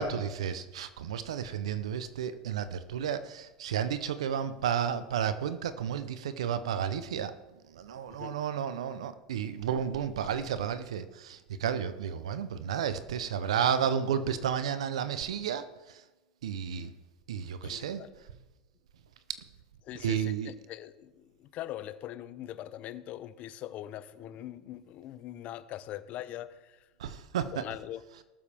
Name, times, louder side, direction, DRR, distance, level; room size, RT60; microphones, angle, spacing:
voice 1, 0.0-7.3 7.7-16.0 16.4-16.9 17.3-18.0 20.0-20.5 27.0-27.6, right 8 dB, 90° right, 12 dB, 0.8 m, -32 dB
voice 2, 17.6-18.2 19.8-26.9 27.5-28.0, left 13 dB, 50° left, 15 dB, 0.7 m, -42 dB
19.0 x 7.3 x 3.5 m, 1.1 s
hypercardioid pair, 105°, 3 cm